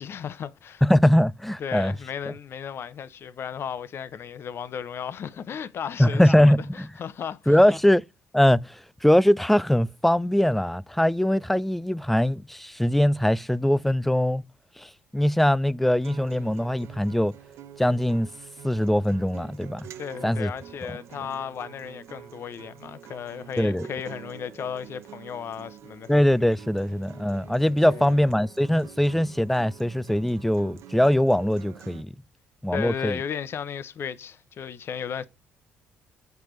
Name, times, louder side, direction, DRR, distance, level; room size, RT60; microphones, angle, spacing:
voice 1, 0.0-0.8 1.6-6.5 7.0-7.5 20.0-26.1 27.8-28.1 32.7-35.3, left 7 dB, 55° left, 0.6 m, -35 dB
voice 2, 0.8-1.9 2.3-2.4 6.0-6.9 7.5-8.0 8.3-14.4 14.8-17.3 17.8-18.3 18.6-19.9 20.2-20.5 20.8-21.0 23.6-23.9 26.1-32.1 32.6-33.2, left 1 dB, 5° left, 0.3 m, -22 dB
Acoustic guitar, 16.0-32.0, right 10 dB, 70° right, 0.6 m, -46 dB
6.8 x 4.6 x 3.1 m
hypercardioid pair, 60°, 5 cm